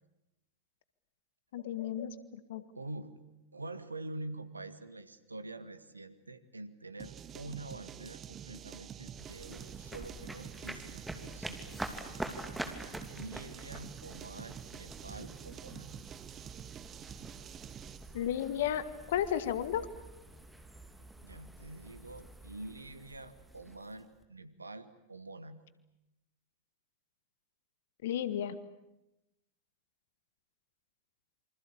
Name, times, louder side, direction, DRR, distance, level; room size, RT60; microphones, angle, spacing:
voice 1, 1.5-2.1 2.5-2.6 18.1-19.9 28.0-28.6, left 10 dB, 55° left, 14 dB, 1.6 m, -33 dB
voice 2, 2.8-3.1 3.5-11.8 13.1-15.9 21.2-25.6, right 2 dB, 80° right, 13 dB, 1.8 m, -46 dB
sound 1, 7.0-18.2, right 9 dB, 25° right, 0.9 m, -48 dB
sound 2, 9.1-24.2, right 1 dB, 5° right, 2.9 m, -46 dB
27.5 x 25.0 x 8.6 m, 0.92 s
figure-of-eight pair, 90°, 0 cm